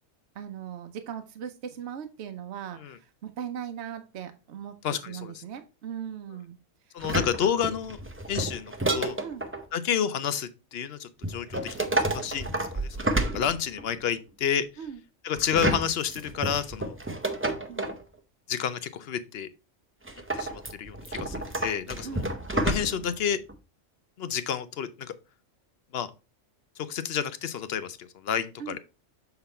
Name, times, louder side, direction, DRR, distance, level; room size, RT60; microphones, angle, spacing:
voice 1, 0.3-4.8 5.1-6.6 6.9-7.1 9.2-9.4 14.8-15.0 17.7-17.9 22.0-22.3 28.6-28.8, right 8 dB, 65° right, 0.9 m, -39 dB
voice 2, 4.8-5.3 6.9-8.0 8.3-9.2 9.7-13.0 13.3-14.7 15.2-17.0 18.5-19.5 20.3-22.2 22.5-23.4 24.2-25.1 25.9-26.1 26.8-28.8, left 8 dB, 60° left, 0.8 m, -30 dB
sound 1, 7.0-9.6 11.2-14.0 15.4-18.0 20.1-23.2 23.5-23.6, right 2 dB, 15° right, 0.5 m, -30 dB
6.8 x 4.0 x 4.2 m
omnidirectional pair, 1.3 m